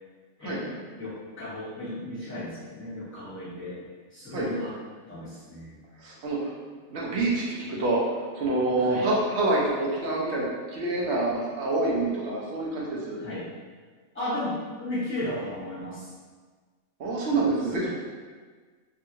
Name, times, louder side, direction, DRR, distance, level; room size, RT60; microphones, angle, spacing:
voice 1, 0.4-3.8 4.1-4.8 5.1-5.8 8.8-9.1 13.2-13.5 14.1-16.1 17.6-17.9, left 1 dB, 10° left, -11 dB, 1.0 m, -35 dB
voice 2, 6.0-6.5 6.9-8.0 8.3-13.2 17.0-17.9, right 2 dB, 65° right, -4 dB, 0.7 m, -27 dB
2.6 x 2.4 x 2.7 m, 1.5 s
omnidirectional pair, 1.4 m